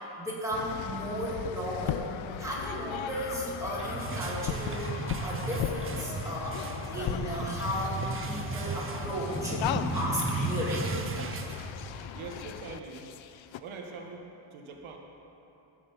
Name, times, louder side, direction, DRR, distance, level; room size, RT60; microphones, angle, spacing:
voice 1, 0.2-2.0 2.4-9.6 9.9-10.9, equal, 5° right, -7 dB, 2.4 m, -35 dB
sound 1, 0.5-13.6, left 10 dB, 75° left, 0.6 m, -37 dB
sound 2, 3.5-12.2, right 6 dB, 30° right, 0.4 m, -37 dB
sound 3, 3.7-11.0, left 1 dB, 15° left, 0.9 m, -39 dB
voice 2, 12.1-13.1 13.6-15.0, right 4 dB, 90° right, 2 dB, 1.2 m, -43 dB
14.5 x 6.7 x 5.4 m, 3.0 s
wide cardioid pair, 155°, 47 cm